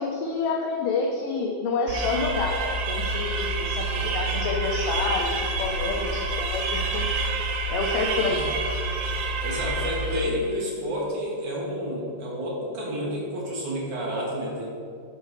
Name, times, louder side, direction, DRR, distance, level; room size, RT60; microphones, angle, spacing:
voice 1, 0.0-7.1 7.7-8.6, left 4 dB, 80° left, 1 dB, 1.9 m, -28 dB
sound 1, 1.9-10.5, right 2 dB, 90° right, 2.9 m, -28 dB
voice 2, 8.2-8.5 9.4-14.7, equal, 60° right, -3 dB, 2.3 m, -30 dB
8.7 x 4.5 x 6.3 m, 2.3 s
omnidirectional pair, 4.6 m